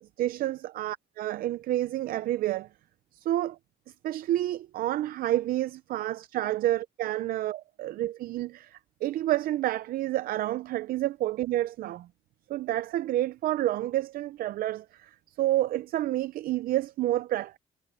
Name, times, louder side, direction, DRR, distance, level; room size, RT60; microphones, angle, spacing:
voice 1, 0.2-2.7 3.1-3.6 4.0-12.1 12.5-15.1 15.4-17.6, right 14 dB, 80° right, 0.5 m, -29 dB
supercardioid pair, 65°, 15 cm